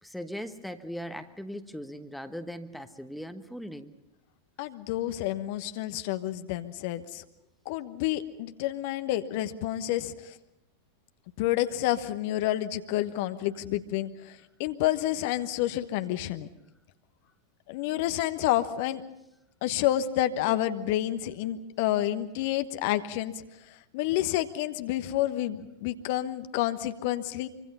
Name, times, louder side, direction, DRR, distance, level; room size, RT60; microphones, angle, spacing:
voice 1, 0.0-3.9, equal, ahead, 8 dB, 1.2 m, -39 dB
voice 2, 4.6-7.2 7.6-10.3 11.4-16.5 17.7-19.0 19.6-23.3 23.9-27.5, left 13 dB, 50° left, 10 dB, 1.1 m, -29 dB
26.0 x 24.5 x 5.6 m, 0.89 s
figure-of-eight pair, 90°, 0 cm